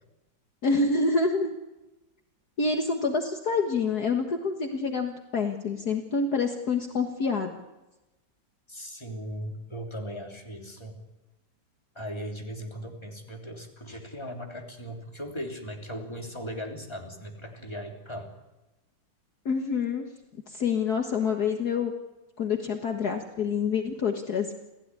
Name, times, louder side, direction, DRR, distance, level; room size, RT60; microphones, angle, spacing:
voice 1, 0.6-1.6 2.6-7.5 19.5-20.1 20.5-21.9 22.4-24.5, left 4 dB, 55° left, 4 dB, 2.0 m, -27 dB
voice 2, 8.7-11.1 11.9-18.3, equal, 15° left, 2 dB, 3.2 m, -38 dB
28.0 x 16.5 x 9.8 m, 1.0 s
omnidirectional pair, 2.2 m